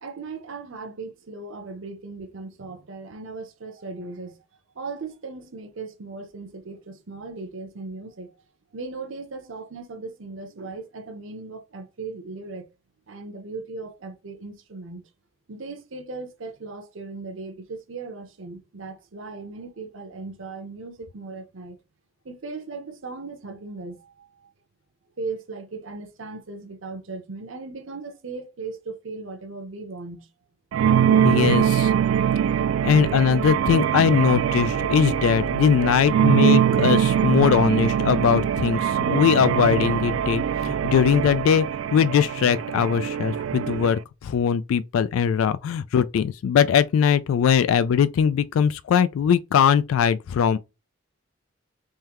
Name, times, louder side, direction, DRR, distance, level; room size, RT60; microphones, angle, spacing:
voice 1, 0.0-4.4 4.7-8.3 8.7-12.7 13.1-15.0 15.5-21.8 22.2-24.5 25.2-30.3, right 3 dB, 75° right, 0.7 m, -37 dB
sound 1, 30.7-44.0, right 9 dB, 90° right, 0.3 m, -22 dB
voice 2, 31.2-31.9 32.8-41.7 41.9-50.6, left 7 dB, 90° left, 0.3 m, -21 dB
3.7 x 3.2 x 2.9 m
head